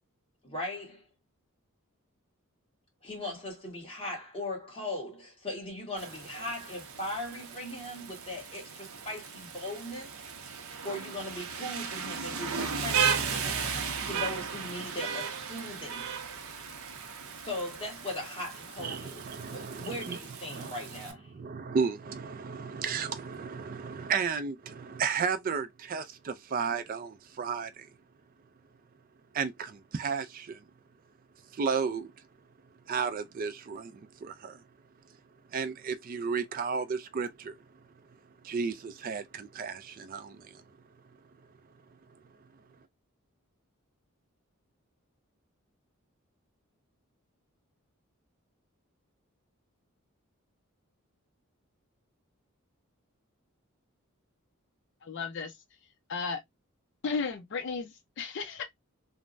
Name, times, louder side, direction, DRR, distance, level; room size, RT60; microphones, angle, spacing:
voice 1, 0.4-1.1 3.0-10.1 10.5-16.1 17.4-21.3, left 1 dB, 25° left, 1.3 m, -39 dB
Rain, 6.0-21.1, right 6 dB, 85° right, 0.6 m, -36 dB
voice 2, 18.8-20.2 20.5-20.7 21.3-27.9 29.3-30.6 31.5-32.1 32.9-34.6 35.5-37.6 38.4-40.6, right 5 dB, 40° right, 0.3 m, -33 dB
voice 3, 55.0-55.6 56.1-56.4 57.0-58.6, left 5 dB, 55° left, 0.4 m, -34 dB
3.3 x 2.0 x 2.4 m
head